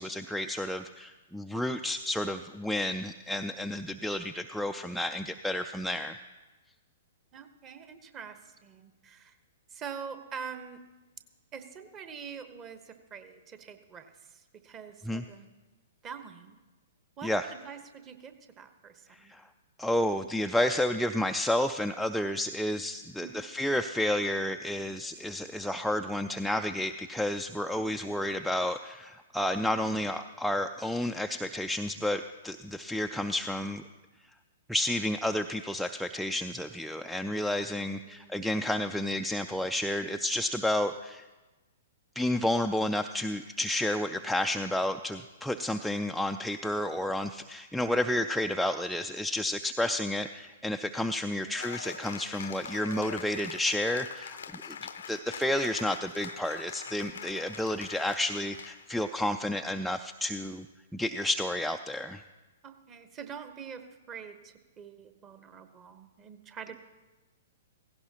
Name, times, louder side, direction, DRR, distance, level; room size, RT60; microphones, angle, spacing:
voice 1, 0.0-6.2 15.1-15.2 17.2-17.5 19.1-19.4 19.8-33.8 34.7-41.2 42.2-54.8 55.1-60.7 60.9-62.2, left 1 dB, ahead, 5 dB, 0.3 m, -31 dB
voice 2, 7.3-9.3 9.7-10.8 11.5-15.5 16.0-16.6 17.2-19.3 23.2-23.5 37.7-38.4 51.3-51.6 62.6-66.8, right 6 dB, 25° right, 9 dB, 1.0 m, -45 dB
Cheering / Applause, 51.5-59.1, left 7 dB, 65° left, 0.5 m, -43 dB
17.0 x 16.0 x 2.9 m, 1.2 s
figure-of-eight pair, 110°, 0 cm